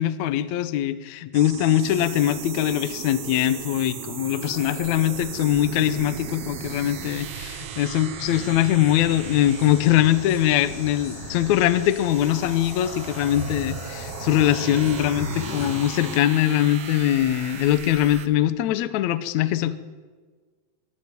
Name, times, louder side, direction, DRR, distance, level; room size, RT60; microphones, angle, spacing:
voice 1, 0.0-19.8, left 12 dB, 70° left, 14 dB, 1.8 m, -22 dB
sound 1, 1.3-18.3, right 8 dB, 60° right, 1.6 m, -37 dB
sound 2, 8.2-16.2, left 3 dB, 50° left, 2.4 m, -38 dB
21.5 x 17.5 x 9.8 m, 1.5 s
omnidirectional pair, 4.2 m